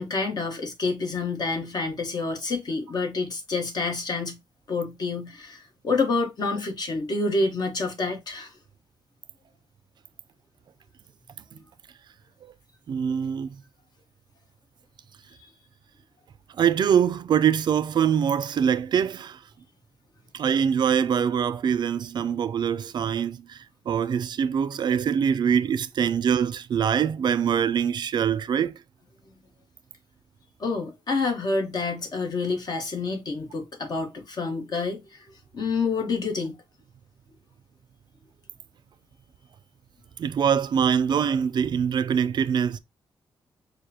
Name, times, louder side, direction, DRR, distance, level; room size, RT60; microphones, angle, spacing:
voice 1, 0.0-4.4 4.7-8.5 30.6-35.2 35.5-36.6, left 3 dB, 55° left, 1.2 m, -28 dB
voice 2, 12.9-13.6 16.6-19.4 20.3-23.6 23.9-28.8 40.2-42.8, right 8 dB, 60° right, 0.3 m, -23 dB
6.4 x 2.2 x 2.7 m
wide cardioid pair, 120°, 9 cm